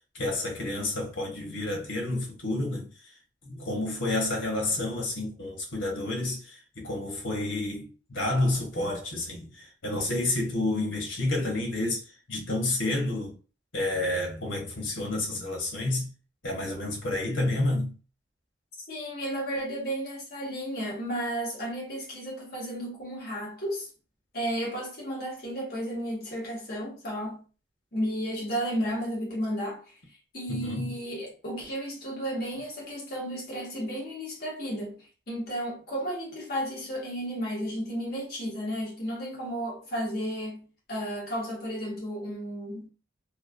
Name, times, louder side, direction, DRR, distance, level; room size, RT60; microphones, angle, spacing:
voice 1, 0.1-2.9 3.4-13.3 13.7-16.1 16.4-17.9 30.5-30.9, left 2 dB, 85° left, 1.1 m, -30 dB
voice 2, 18.8-23.9 24.3-27.4 27.9-29.9 30.3-42.9, equal, 50° left, 1.1 m, -33 dB
3.1 x 2.2 x 2.5 m
head